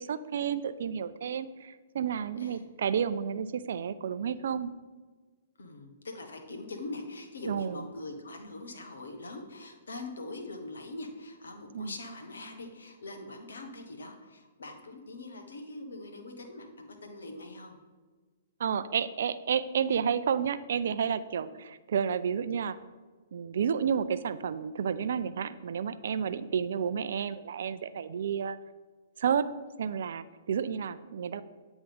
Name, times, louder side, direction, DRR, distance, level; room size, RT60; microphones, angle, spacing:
voice 1, 0.0-4.7 7.5-7.8 11.7-11.9 18.6-22.8 23.3-28.6 29.2-29.5 29.8-31.4, right 7 dB, 65° right, 13 dB, 0.4 m, -31 dB
voice 2, 5.6-17.8, left 2 dB, 75° left, 4 dB, 1.1 m, -42 dB
9.0 x 3.5 x 5.2 m, 1.4 s
figure-of-eight pair, 120°, 0 cm